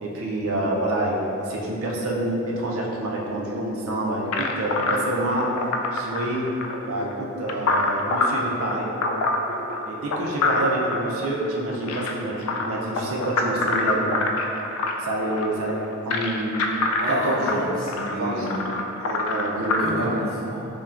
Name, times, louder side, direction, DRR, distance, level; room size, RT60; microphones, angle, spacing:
voice 1, 0.0-5.5 5.9-6.5 6.9-8.9 9.9-14.1 15.0-15.7 16.1-16.7 17.1-17.7 18.2-18.6 19.0-20.2, right 1 dB, 70° right, -3 dB, 0.5 m, -27 dB
sound 1, 4.3-19.9, left 2 dB, 75° left, 0.3 m, -26 dB
voice 2, 17.0-18.6 19.8-20.6, equal, 5° left, -12 dB, 1.1 m, -31 dB
5.5 x 2.2 x 2.4 m, 2.9 s
head